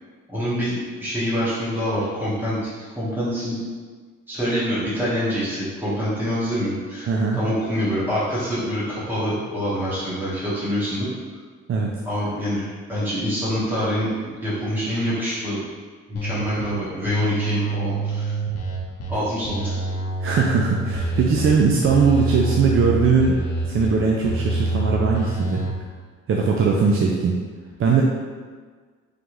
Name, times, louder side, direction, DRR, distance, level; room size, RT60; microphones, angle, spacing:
voice 1, 0.3-2.7 3.0-3.6 4.3-7.1 7.4-11.1 12.0-14.1 14.4-15.6 16.1-18.3 19.1-19.8, equal, 5° right, -10 dB, 1.3 m, -25 dB
voice 2, 7.0-7.4 11.7-11.9 20.2-25.6 26.3-27.4 27.8-28.0, right 5 dB, 45° right, -1 dB, 0.5 m, -20 dB
sound 1, 16.1-16.7 17.0-19.1 19.4-21.5 21.8-23.9 24.2-25.7, right 2 dB, 55° left, 0.9 m, -26 dB
3.9 x 3.3 x 3.1 m, 1.5 s
cardioid pair, 90°, 30 cm